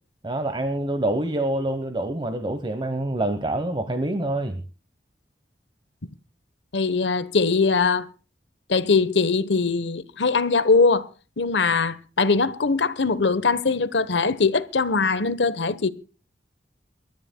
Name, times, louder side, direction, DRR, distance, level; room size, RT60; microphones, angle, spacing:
voice 1, 0.2-4.6, right 1 dB, 25° right, 1.1 m, -26 dB
voice 2, 6.7-8.1 8.7-11.1 11.4-15.9, left 4 dB, 85° left, 1.1 m, -21 dB
29.0 x 13.5 x 2.3 m
head